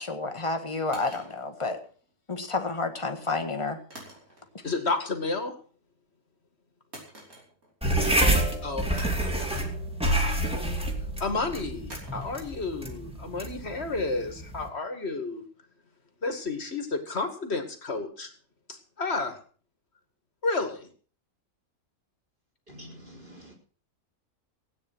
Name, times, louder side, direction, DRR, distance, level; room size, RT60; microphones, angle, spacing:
voice 1, 0.0-1.8 2.3-3.8, left 3 dB, 20° left, 6 dB, 1.6 m, -30 dB
sound 1, 0.9-2.3 3.9-4.7 5.1-5.5 6.9-7.9 8.2-8.3 9.0-10.5 11.9-14.9, right 1 dB, 75° right, 5.6 m, -49 dB
voice 2, 4.6-5.5 8.6-9.0 9.3-9.5 11.2-15.4 16.2-18.3 18.7-19.4 20.4-20.9, left 3 dB, 45° left, 7 dB, 2.2 m, -31 dB
sound 2, 7.8-14.7, right 1 dB, 5° right, 2.4 m, -28 dB
voice 3, 22.7-23.5, equal, 35° right, -1 dB, 4.6 m, -47 dB
16.0 x 9.3 x 6.2 m, 0.43 s
omnidirectional pair, 1.5 m